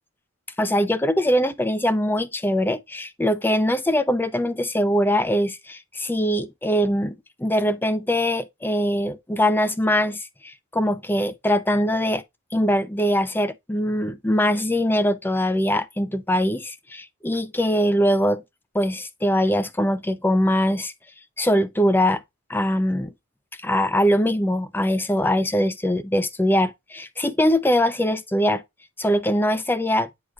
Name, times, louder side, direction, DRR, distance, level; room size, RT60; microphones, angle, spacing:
voice 1, 0.6-12.2 12.5-18.4 18.7-20.9 21.4-22.2 22.5-23.1 23.6-28.6 29.0-30.1, equal, 10° left, 0.5 m, -22 dB
9.4 x 4.8 x 2.4 m
head